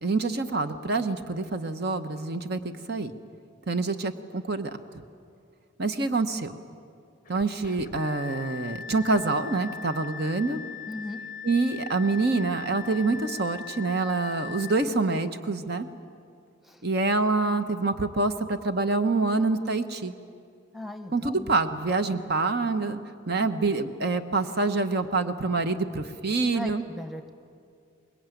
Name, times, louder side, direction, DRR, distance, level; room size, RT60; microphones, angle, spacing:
voice 1, 0.0-2.6 2.9-3.1 3.7-4.8 5.8-6.5 7.3-10.6 11.4-15.9 16.8-20.1 21.1-23.0 23.3-26.8, right 3 dB, 50° right, 9 dB, 1.0 m, -26 dB
sound 1, 7.3-14.8, left 7 dB, 40° left, 0.6 m, -40 dB
voice 2, 10.9-11.2 16.7-16.8 20.7-21.5 26.5-27.3, left 1 dB, ahead, 6 dB, 1.1 m, -38 dB
24.5 x 21.0 x 9.2 m, 2.3 s
head